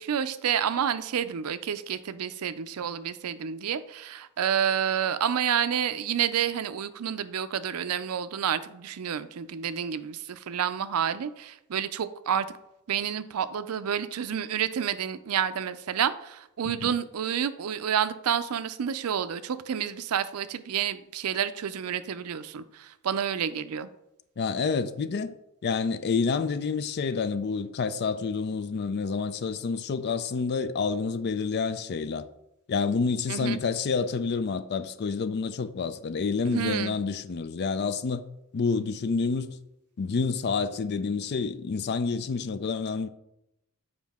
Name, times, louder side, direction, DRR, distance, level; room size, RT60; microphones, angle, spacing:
voice 1, 0.0-12.5 12.9-23.9 33.3-33.6 36.5-36.9, right 8 dB, 90° right, 0.4 m, -29 dB
voice 2, 24.4-25.3 25.6-32.3 32.7-38.2 38.5-39.5 40.0-43.1, left 5 dB, 50° left, 0.4 m, -28 dB
7.3 x 5.0 x 3.5 m
head